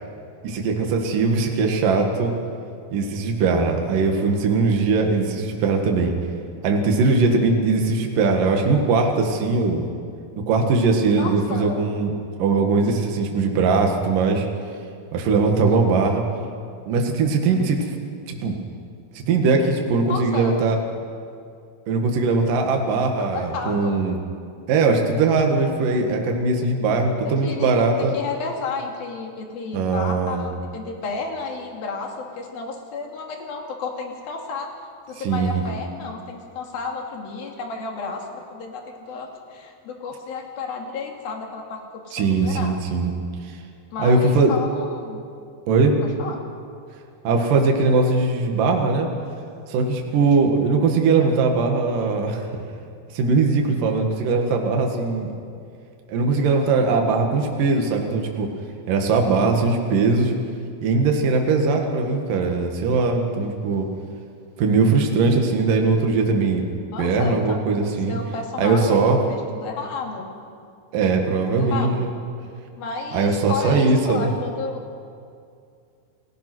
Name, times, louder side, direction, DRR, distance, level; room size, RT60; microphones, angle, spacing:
voice 1, 0.4-2.3 2.9-6.1 6.6-9.9 10.5-12.1 12.4-14.5 15.1-16.2 16.9-17.9 18.3-18.6 19.2-20.8 21.9-24.2 24.7-28.1 29.7-30.5 35.2-35.6 42.1-43.1 44.0-44.5 45.7-46.0 47.2-49.1 49.7-52.7 53.1-55.3 56.1-58.5 58.9-60.3 60.8-63.9 64.6-66.6 67.0-68.2 68.6-69.2 70.9-72.1 73.1-74.3, right 4 dB, 60° right, 2 dB, 3.3 m, -20 dB
voice 2, 11.2-11.8 20.1-20.7 23.2-24.0 27.2-27.7 28.0-34.7 35.1-42.8 43.9-45.2 46.0-46.4 66.9-70.3 71.5-72.0 72.8-74.8, left 4 dB, 70° left, 2 dB, 4.2 m, -32 dB
29.5 x 18.5 x 6.2 m, 2.3 s
omnidirectional pair, 4.5 m